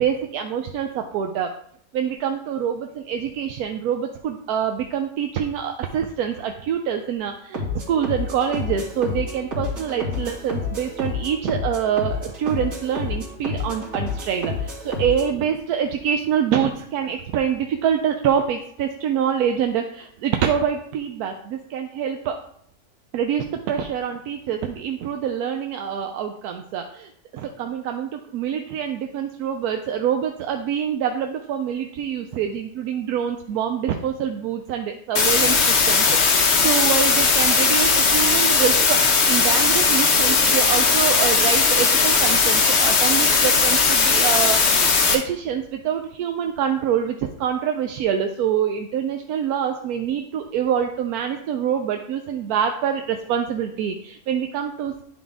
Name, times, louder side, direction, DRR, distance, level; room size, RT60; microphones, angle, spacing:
voice 1, 0.0-1.5 1.9-22.4 23.1-35.6 35.8-39.0 39.3-55.0, right 8 dB, 85° right, 4 dB, 1.1 m, -25 dB
sound 1, 7.5-15.3, left 3 dB, 65° right, 2.3 m, -29 dB
sound 2, 35.2-45.2, left 5 dB, 50° left, 1.1 m, -18 dB
11.0 x 3.9 x 3.5 m, 0.68 s
omnidirectional pair, 1.6 m